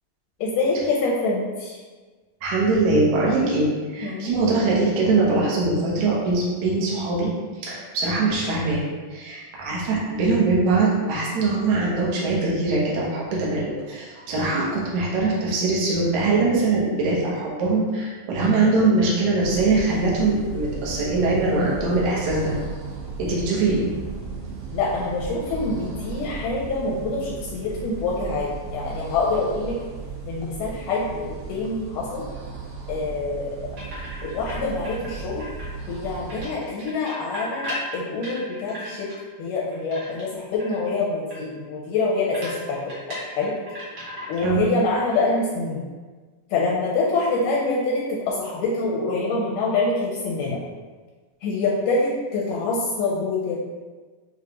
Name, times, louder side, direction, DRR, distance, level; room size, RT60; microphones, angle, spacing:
voice 1, 0.4-1.8 4.0-4.3 24.7-29.8 30.3-32.2 32.9-33.6 34.2-35.4 35.9-39.1 39.4-43.5 44.3-45.8 46.5-50.6 51.4-53.6, left 3 dB, 80° left, -4 dB, 1.8 m, -25 dB
voice 2, 2.4-7.3 7.6-22.5 23.2-23.9 44.4-44.7, right 3 dB, 65° right, -5 dB, 1.9 m, -22 dB
sound 1, 19.4-36.5, right 4 dB, 90° right, 1.4 m, -36 dB
sound 2, 33.8-34.5 34.8-36.0 36.3-39.2 39.6-40.3 40.6-40.9 41.3-41.4 41.7-41.8 42.3-44.6 44.8-45.2, equal, 50° right, 1.5 m, -36 dB
7.0 x 2.4 x 2.9 m, 1.4 s
omnidirectional pair, 4.2 m